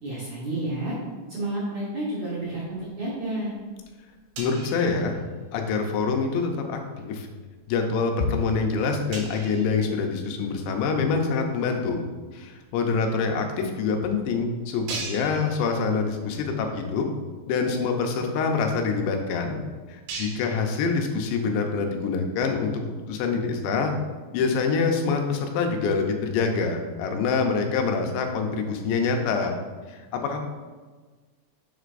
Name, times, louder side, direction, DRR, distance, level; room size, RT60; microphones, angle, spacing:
voice 1, 0.0-1.0 1.3-3.5, right 1 dB, 65° right, -7 dB, 1.8 m, -30 dB
sound 1, 3.6-5.8 6.1-6.4 6.9-7.2 7.7-7.8 8.2-8.3 8.5-8.6 9.1-10.8 11.4-11.5 12.6-12.7 12.8-13.0 13.6-13.7 14.1-14.2 14.8-16.3 16.6-16.8 17.3-17.4 17.6-21.4, right 3 dB, 90° right, 3.8 m, -41 dB
voice 2, 4.4-5.2 5.5-7.3 7.7-12.0 12.3-17.1 17.5-19.6 19.9-22.7 23.1-23.9 24.3-29.5 29.9-30.4, left 4 dB, 80° left, 3 dB, 3.0 m, -25 dB
9.6 x 7.5 x 2.6 m, 1.4 s
omnidirectional pair, 5.1 m